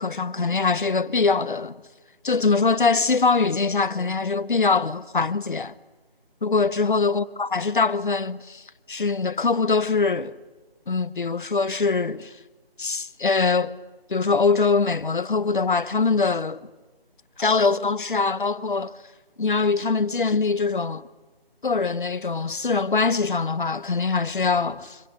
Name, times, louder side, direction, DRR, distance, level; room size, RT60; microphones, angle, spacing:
voice 1, 0.0-1.8 2.2-5.7 6.4-8.6 8.9-10.3 10.9-12.3 12.8-13.7 14.1-16.6 17.4-18.9 19.4-21.0 21.6-25.0, left 4 dB, 55° left, 1.0 m, -23 dB
26.0 x 25.5 x 6.8 m
figure-of-eight pair, 170°, 30 cm